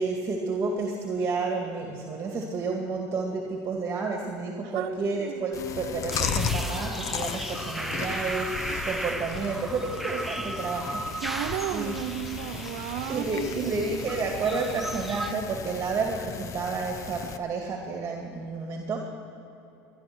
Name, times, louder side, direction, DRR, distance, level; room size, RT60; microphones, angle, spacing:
voice 1, 0.0-11.4 11.7-12.0 13.1-19.0, right 4 dB, 30° right, 2 dB, 2.2 m, -31 dB
voice 2, 4.7-5.3 11.2-13.9, right 14 dB, 75° right, 10 dB, 0.6 m, -33 dB
sound 1, 5.5-10.7, left 11 dB, 85° left, 0.9 m, -45 dB
Chewing mastication, 5.5-17.4, left 6 dB, 45° left, 0.9 m, -36 dB
sound 2, 6.1-15.3, right 1 dB, ahead, 0.7 m, -36 dB
20.0 x 11.0 x 6.2 m, 2.8 s
supercardioid pair, 115°, 8 cm